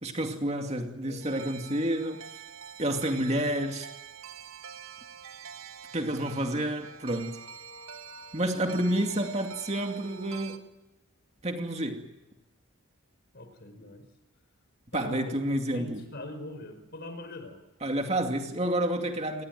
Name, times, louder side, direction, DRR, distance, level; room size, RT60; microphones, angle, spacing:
voice 1, 0.0-2.3 2.8-3.9 5.9-7.4 8.3-10.7 11.4-12.1 14.9-16.0 17.8-19.4, right 1 dB, 30° right, 2.3 m, -29 dB
sound 1, 1.2-10.6, right 7 dB, 65° right, 1.6 m, -46 dB
voice 2, 13.3-14.0 14.9-17.6, left 1 dB, 50° left, 4.8 m, -42 dB
26.5 x 19.5 x 9.4 m
head